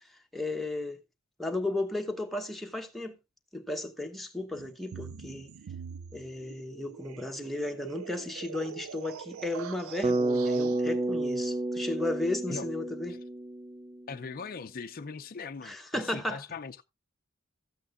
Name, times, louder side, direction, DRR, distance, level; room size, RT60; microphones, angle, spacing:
voice 1, 0.3-1.0 1.4-3.1 3.5-5.5 6.1-13.2 15.6-16.4, left 2 dB, ahead, 1.0 m, -34 dB
sound 1, 4.5-10.8, right 8 dB, 80° right, 0.4 m, -44 dB
Bass guitar, 10.0-14.1, right 2 dB, 30° right, 0.7 m, -30 dB
voice 2, 14.1-16.8, left 5 dB, 45° left, 0.5 m, -40 dB
13.0 x 8.5 x 2.5 m
head